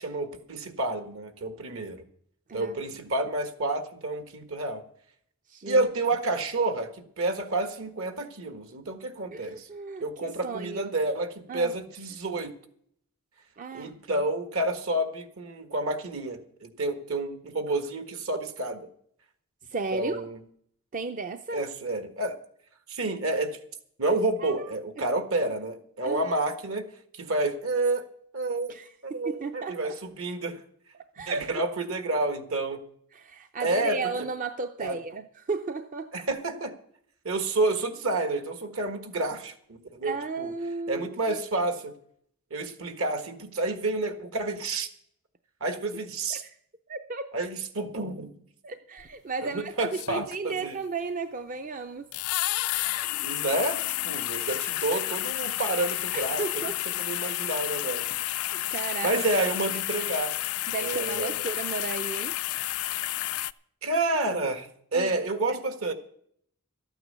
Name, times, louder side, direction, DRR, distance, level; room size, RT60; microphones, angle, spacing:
voice 1, 0.0-2.0 2.5-4.8 5.7-6.9 7.2-9.7 10.0-12.5 13.7-18.9 19.9-20.4 21.5-22.4 22.9-23.6 24.0-26.8 27.1-28.1 28.3-28.8 29.0-30.6 31.3-32.8 33.6-34.0 34.8-34.9 36.1-36.7 37.2-40.5 40.9-41.9 42.5-44.9 45.6-46.4 47.3-48.4 49.4-50.7 53.2-56.4 57.0-58.0 59.0-60.3 60.8-61.4 63.8-65.9, right 2 dB, 70° right, 7 dB, 1.5 m, -29 dB
voice 2, 5.5-5.9 9.3-10.9 11.5-11.7 13.6-14.3 19.6-20.2 20.9-21.6 24.4-24.6 25.0-25.1 26.0-26.4 28.7-30.0 30.9-31.6 33.1-36.1 40.0-41.4 46.3-46.6 46.9-47.3 48.6-52.1 56.1-56.8 58.4-59.3 60.7-62.4 64.9-65.1 65.5-65.6, right 4 dB, 35° right, 8 dB, 0.5 m, -34 dB
sound 1, 49.0-49.1 49.9-50.7 52.1-63.5, left 16 dB, 80° left, 0.4 m, -31 dB
13.0 x 9.1 x 6.7 m, 0.67 s
head